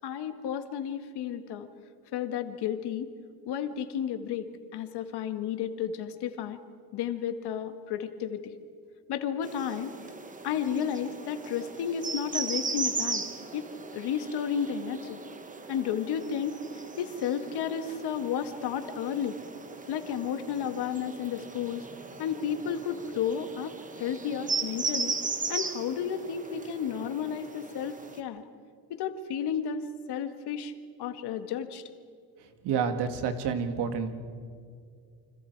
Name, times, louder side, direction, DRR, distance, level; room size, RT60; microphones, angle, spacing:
voice 1, 0.0-1.7 2.1-3.1 3.5-6.6 6.9-8.5 9.1-9.9 10.4-13.3 13.5-13.7 13.9-15.2 15.7-16.6 17.0-19.4 19.9-21.8 22.2-25.2 25.5-28.5 28.9-30.7 31.0-31.8, left 8 dB, 80° left, 8 dB, 1.7 m, -32 dB
sound 1, 9.4-28.2, right 4 dB, 20° right, 1.3 m, -37 dB
voice 2, 32.6-34.1, right 6 dB, 90° right, 8 dB, 2.1 m, -29 dB
29.5 x 25.5 x 4.7 m, 2.2 s
cardioid pair, 145°, 39 cm